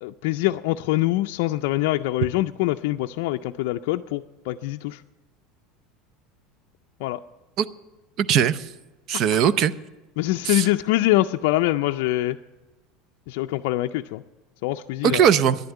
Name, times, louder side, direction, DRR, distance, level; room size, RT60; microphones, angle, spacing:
voice 1, 0.0-5.0 7.0-7.2 10.2-12.4 13.3-14.2 14.6-15.3, left 16 dB, 75° left, 5 dB, 0.4 m, -24 dB
voice 2, 8.2-8.7 9.1-9.7 10.4-10.7 15.0-15.6, right 8 dB, 50° right, 16 dB, 0.6 m, -19 dB
10.5 x 9.2 x 9.0 m, 1.1 s
supercardioid pair, 125°, 0 cm